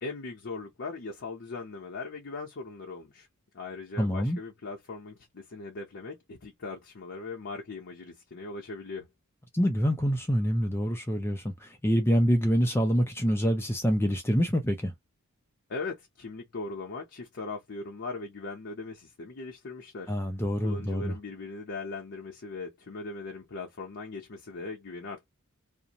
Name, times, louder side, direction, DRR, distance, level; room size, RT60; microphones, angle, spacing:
voice 1, 0.0-3.3 3.5-9.1 15.7-20.1 20.6-25.3, left 3 dB, 55° left, 0.7 m, -39 dB
voice 2, 4.0-4.4 9.5-14.9 20.1-21.1, equal, 10° left, 0.4 m, -26 dB
2.5 x 2.1 x 2.8 m
head